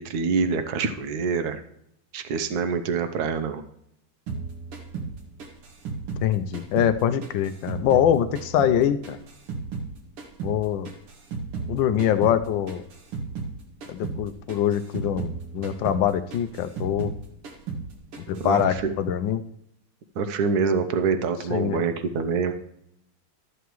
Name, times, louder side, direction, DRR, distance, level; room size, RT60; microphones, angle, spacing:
voice 1, 0.0-1.6 2.1-3.6 18.4-18.9 20.2-22.5, right 5 dB, 60° right, 8 dB, 1.1 m, -25 dB
sound 1, 4.3-7.0 7.2-9.9 10.2-13.6 13.8-14.2 14.5-17.2 17.4-17.9 18.1-18.8, right 4 dB, 85° right, 2.5 m, -34 dB
voice 2, 6.2-9.2 10.4-10.9 11.7-12.8 13.9-17.1 18.3-19.4 21.5-21.8, left 10 dB, 75° left, 11 dB, 1.1 m, -24 dB
13.0 x 8.1 x 3.0 m, 0.75 s
omnidirectional pair, 2.4 m